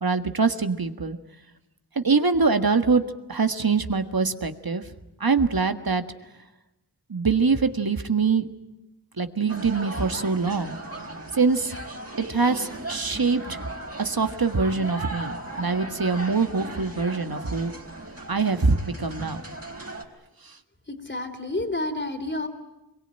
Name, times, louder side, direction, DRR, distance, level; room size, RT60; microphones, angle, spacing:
voice 1, 0.0-1.2 2.0-3.0 3.3-4.8 5.2-6.0 7.1-8.5 9.2-10.8 11.3-11.8 12.2-13.6 14.0-17.7 18.3-19.4 20.4-20.5, right 4 dB, 60° right, 8 dB, 1.7 m, -24 dB
sound 1, 9.5-20.0, right 2 dB, 35° right, 4.2 m, -37 dB
voice 2, 20.9-22.5, left 2 dB, 25° left, 7 dB, 3.3 m, -30 dB
26.5 x 22.5 x 9.0 m, 0.97 s
wide cardioid pair, 40°, 40 cm